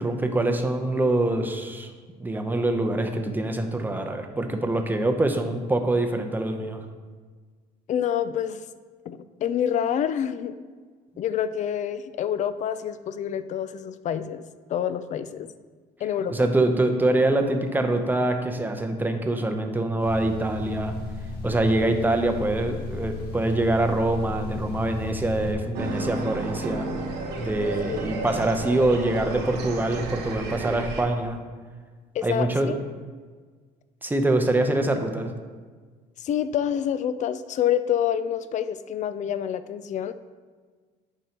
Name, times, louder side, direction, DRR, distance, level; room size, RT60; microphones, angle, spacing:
voice 1, 0.0-1.9 2.2-6.8 16.3-20.9 21.4-26.9 27.4-31.4 32.2-32.7 34.0-35.3, right 2 dB, 10° right, 5 dB, 0.7 m, -24 dB
voice 2, 7.9-8.6 9.1-10.6 11.2-14.4 14.7-15.5 16.0-16.4 27.9-28.0 32.1-32.8 36.2-40.1, left 9 dB, 45° left, 13 dB, 0.4 m, -27 dB
sound 1, 20.0-25.5, left 3 dB, 75° left, 1.7 m, -35 dB
sound 2, 25.7-31.0, right 2 dB, 85° right, 1.1 m, -32 dB
9.1 x 5.4 x 2.9 m, 1.5 s
cardioid pair, 110°, 17 cm